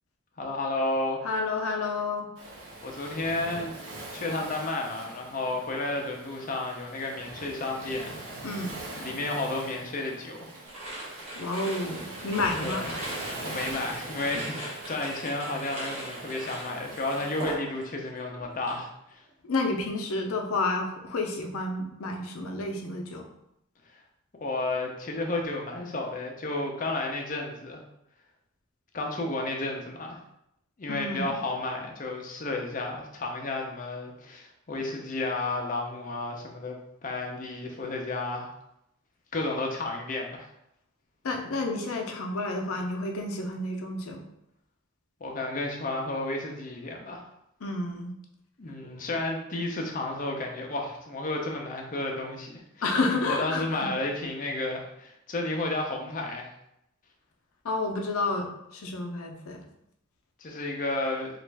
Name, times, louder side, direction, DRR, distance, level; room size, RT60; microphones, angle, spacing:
voice 1, 0.4-1.2 2.8-3.7 4.1-8.1 8.9-10.5 12.6-13.0 13.4-19.2 23.9-24.0 24.4-27.8 28.9-30.2 30.8-38.5 39.3-40.5 45.2-47.3 48.6-52.8 53.2-56.5 60.4-61.3, left 2 dB, 40° left, 1 dB, 0.5 m, -32 dB
voice 2, 1.2-2.3 8.4-8.7 11.4-12.9 19.4-23.3 30.9-31.4 41.2-44.2 47.6-48.2 48.8-48.9 52.8-53.9 57.6-59.6, left 2 dB, 90° left, 3 dB, 0.6 m, -30 dB
Waves surf, 2.4-17.5, right 2 dB, 85° right, 0.8 m, -42 dB
sound 1, 10.7-18.1 18.4-18.8, right 1 dB, 30° right, 0.8 m, -39 dB
3.0 x 2.4 x 3.3 m, 0.80 s
head